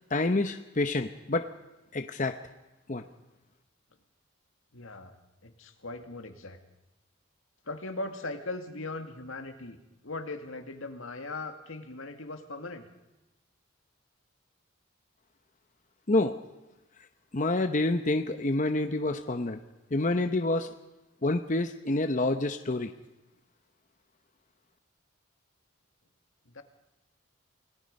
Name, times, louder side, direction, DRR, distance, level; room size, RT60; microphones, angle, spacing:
voice 1, 0.1-1.5 1.9-2.4 2.9-3.0 16.1-16.3 17.3-19.6 19.9-20.7 21.2-22.9, left 2 dB, 40° left, 7 dB, 0.9 m, -27 dB
voice 2, 4.7-5.2 5.4-6.6 7.7-9.8 10.0-12.9 26.5-26.6, left 2 dB, 80° left, 6 dB, 2.2 m, -39 dB
29.0 x 18.5 x 5.4 m, 1.0 s
head